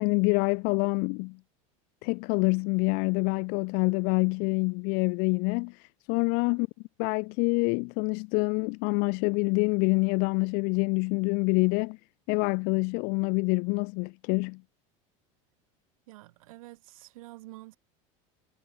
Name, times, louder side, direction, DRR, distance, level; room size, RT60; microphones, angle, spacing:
voice 1, 0.0-1.4 2.0-6.7 7.0-12.0 12.3-14.6, left 33 dB, 65° left, 0.5 m, -26 dB
voice 2, 16.1-17.8, right 19 dB, 85° right, 2.4 m, -48 dB
supercardioid pair, 115°, 17 cm